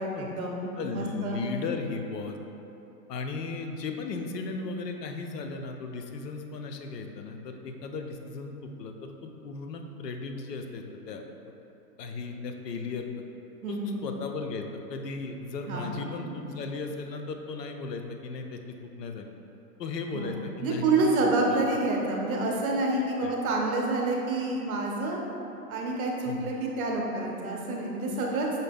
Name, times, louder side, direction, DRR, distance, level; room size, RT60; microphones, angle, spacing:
voice 1, 0.0-1.4 13.6-14.0 15.7-16.1 20.1-25.2 25.7-28.6, right 2 dB, 60° right, -1 dB, 0.8 m, -28 dB
voice 2, 0.8-2.4 3.1-11.2 12.0-13.1 13.7-18.6 19.0-19.3 19.8-21.6 23.2-23.3 26.3-26.5, left 4 dB, 80° left, 4 dB, 0.6 m, -36 dB
5.6 x 2.1 x 3.4 m, 3.0 s
hypercardioid pair, 140°, 48 cm